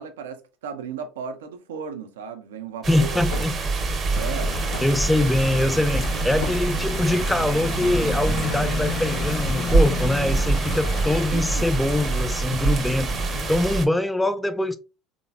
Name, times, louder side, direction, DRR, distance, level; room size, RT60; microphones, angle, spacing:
voice 1, 0.0-3.2 4.1-4.5 11.3-11.7, right 7 dB, 90° right, 0.4 m, -35 dB
sound 1, 2.8-13.9, right 3 dB, 45° right, 0.6 m, -26 dB
voice 2, 2.9-3.6 4.8-13.1 13.5-14.8, left 1 dB, 5° left, 0.4 m, -23 dB
sound 2, 3.2-9.3, left 2 dB, 85° left, 0.7 m, -41 dB
sound 3, 4.1-13.7, left 3 dB, 40° left, 0.6 m, -31 dB
3.1 x 2.1 x 2.3 m
hypercardioid pair, 75°, 0 cm